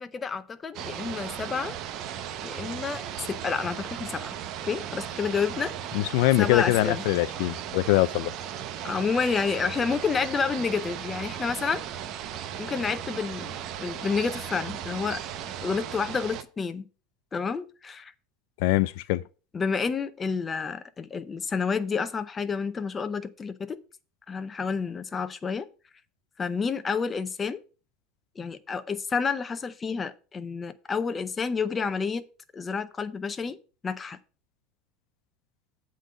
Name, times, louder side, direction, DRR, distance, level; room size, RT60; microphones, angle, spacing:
voice 1, 0.0-1.8 2.4-3.0 3.3-4.3 4.6-5.7 6.0-7.0 8.8-11.9 12.6-15.2 15.6-16.9 17.3-18.1 19.5-23.8 24.3-25.7 26.4-27.6 28.4-32.2 32.5-33.6 33.8-34.2, left 5 dB, 20° left, 0.6 m, -29 dB
sound 1, 0.7-16.4, right 10 dB, 45° right, 0.7 m, -36 dB
voice 2, 5.9-8.3 18.6-19.2, left 17 dB, 70° left, 0.3 m, -23 dB
8.1 x 3.8 x 6.5 m
supercardioid pair, 150°, 0 cm